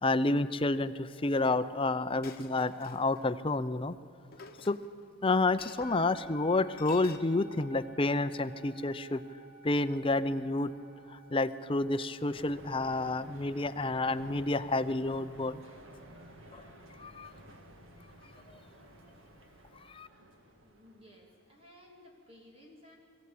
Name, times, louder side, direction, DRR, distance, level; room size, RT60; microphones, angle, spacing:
voice 1, 0.0-4.0 4.6-4.8 5.2-9.2 9.6-10.7 11.1-15.6 16.5-16.6 17.0-17.3 18.5-18.6 19.9-20.1, left 2 dB, 25° left, 12 dB, 0.6 m, -30 dB
Chink clink, 1.3-1.5 2.2-3.2 4.3-5.1 5.6-5.9 6.8-7.2, left 5 dB, 45° left, 1.4 m, -50 dB
sound 1, 3.9-4.1 4.3-5.4 5.8-14.6, right 2 dB, 5° right, 2.0 m, -53 dB
sound 2, 12.3-21.4, right 1 dB, 70° right, 2.1 m, -54 dB
voice 2, 20.6-23.0, left 1 dB, 30° right, 0 dB, 2.4 m, -57 dB
22.0 x 15.0 x 8.5 m, 2.8 s
head